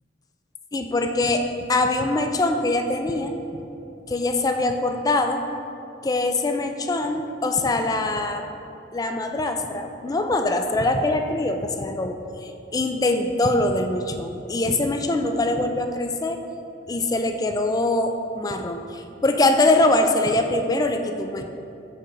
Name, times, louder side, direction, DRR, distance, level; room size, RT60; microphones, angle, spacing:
voice 1, 0.7-3.6 4.1-5.4 6.0-8.5 8.9-16.4 16.9-21.5, left 2 dB, 20° left, 6 dB, 0.3 m, -23 dB
6.2 x 5.4 x 3.9 m, 2.7 s
head